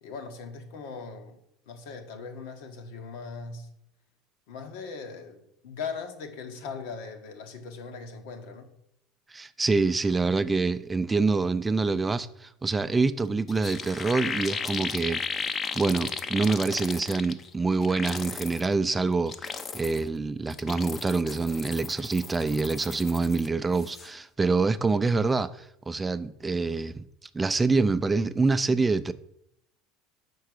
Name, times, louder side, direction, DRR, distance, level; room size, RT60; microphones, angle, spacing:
voice 1, 0.0-1.4 1.7-3.7 4.5-8.7, left 5 dB, 80° left, 1.2 m, -39 dB
voice 2, 9.3-15.2 15.7-29.1, right 3 dB, 15° right, 0.4 m, -26 dB
sound 1, 13.2-13.3 13.5-17.5 17.8-18.6 19.1-20.1 20.5-23.5 23.7-24.1, left 5 dB, 30° left, 0.6 m, -35 dB
5.7 x 4.6 x 6.5 m
supercardioid pair, 115°, 0 cm